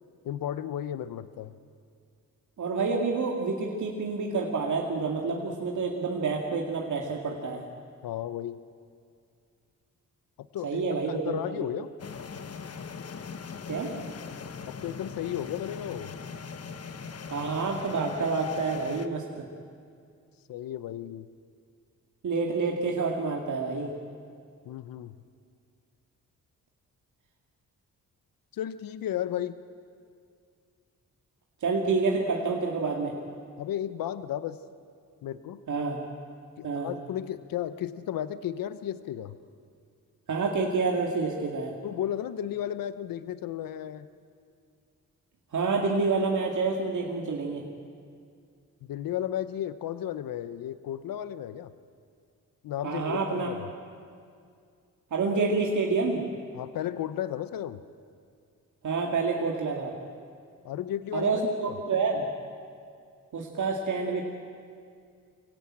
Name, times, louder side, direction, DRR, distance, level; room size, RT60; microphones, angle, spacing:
voice 1, 0.2-1.5 8.0-8.6 10.5-11.9 14.6-16.1 20.5-21.3 24.6-25.2 28.5-29.6 33.6-34.6 35.2-35.6 36.6-39.4 41.8-44.1 48.8-51.7 52.6-53.7 56.5-57.8 60.6-61.4 61.7-61.8, left 11 dB, 90° left, 13 dB, 0.8 m, -34 dB
voice 2, 2.6-7.6 10.6-11.7 13.7-13.9 17.3-19.5 22.2-23.9 31.6-33.1 35.7-36.0 36.6-36.9 40.3-41.7 45.5-47.6 52.8-53.5 55.1-56.2 58.8-59.9 61.1-62.3 63.3-64.2, right 4 dB, 60° right, 0 dB, 2.3 m, -28 dB
sound 1, 12.0-19.1, left 5 dB, 45° left, 1.2 m, -40 dB
24.0 x 17.5 x 8.8 m, 2.2 s
cardioid pair, 80°, 33 cm